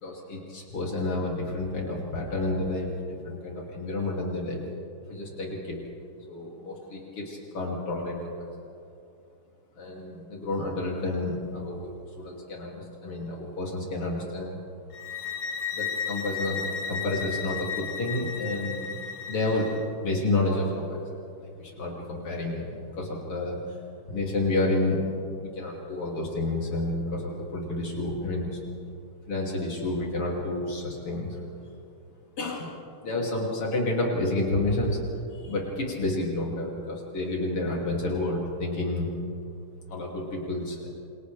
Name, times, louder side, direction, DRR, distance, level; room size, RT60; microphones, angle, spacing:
voice 1, 0.0-2.9 3.2-4.6 5.1-5.8 6.3-8.5 9.8-14.6 15.7-18.9 19.3-19.7 20.0-21.1 21.4-23.6 24.1-25.0 25.4-28.6 29.3-31.4 32.4-32.7 33.0-35.0 35.3-39.1 39.9-40.9, left 2 dB, 85° left, -3 dB, 3.7 m, -30 dB
sound 1, 14.9-19.8, left 6 dB, 60° left, 2.1 m, -34 dB
29.0 x 28.5 x 3.4 m, 2.6 s
omnidirectional pair, 2.4 m